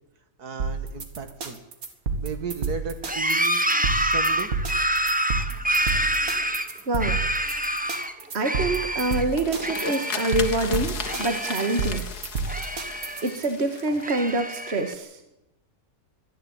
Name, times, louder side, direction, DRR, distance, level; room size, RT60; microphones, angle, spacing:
voice 1, 0.4-1.6 2.2-3.6 4.0-4.5, right 6 dB, 80° right, 9 dB, 2.2 m, -35 dB
sound 1, 0.6-13.5, right 4 dB, 60° right, 2.5 m, -30 dB
sound 2, 3.0-8.1 8.4-9.2 9.6-10.6 10.8-12.0 12.4-13.4 13.9-14.9, right 1 dB, 5° right, 0.9 m, -27 dB
voice 2, 6.9-7.2 8.3-12.0 13.2-15.1, right 2 dB, 45° right, 6 dB, 2.0 m, -26 dB
sound 3, 8.8-14.9, left 6 dB, 80° left, 2.1 m, -37 dB
22.5 x 13.0 x 8.9 m, 0.86 s
omnidirectional pair, 1.6 m